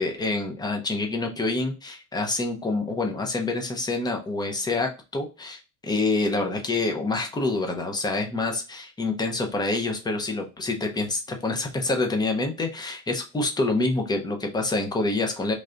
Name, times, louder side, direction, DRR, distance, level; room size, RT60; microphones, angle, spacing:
voice 1, 0.0-15.5, left 3 dB, 10° left, 3 dB, 0.5 m, -27 dB
3.3 x 2.5 x 3.7 m, 0.29 s
cardioid pair, 135°, 48 cm